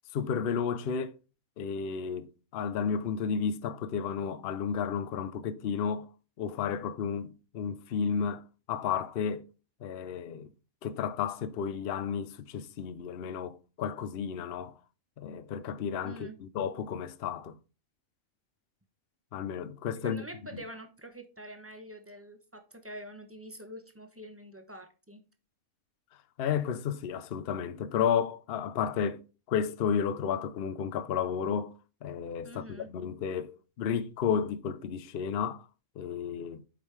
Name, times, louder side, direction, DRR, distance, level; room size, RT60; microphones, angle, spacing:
voice 1, 0.1-1.2 1.6-6.1 6.4-9.4 9.8-10.5 10.8-14.7 15.2-17.6 19.3-20.2 26.4-29.2 29.5-31.7 32.0-35.7 36.0-36.6, left 7 dB, 55° left, 0.7 m, -32 dB
voice 2, 16.0-16.4 20.0-25.2 32.4-32.9, right 1 dB, 10° right, 0.9 m, -46 dB
8.7 x 5.3 x 3.2 m
omnidirectional pair, 1.5 m